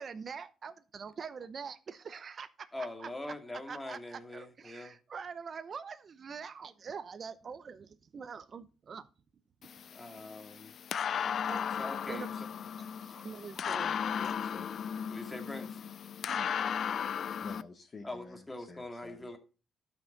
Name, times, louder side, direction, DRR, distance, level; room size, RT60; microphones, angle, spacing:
voice 1, 0.0-3.1 3.7-9.1 11.5-11.7 12.1-12.4 13.0-14.0 16.2-16.5, right 6 dB, 45° right, 0.8 m, -44 dB
voice 2, 2.7-5.0 9.9-10.7 11.8-12.3 13.1-13.3 13.6-13.9 14.4-14.5 15.1-15.8 18.0-19.4, left 2 dB, 15° left, 2.3 m, -43 dB
sound 1, 9.6-17.6, left 8 dB, 60° left, 0.4 m, -36 dB
voice 3, 13.7-14.7 17.3-19.3, left 3 dB, 40° left, 1.8 m, -51 dB
12.5 x 6.0 x 4.0 m
cardioid pair, 90°, 0 cm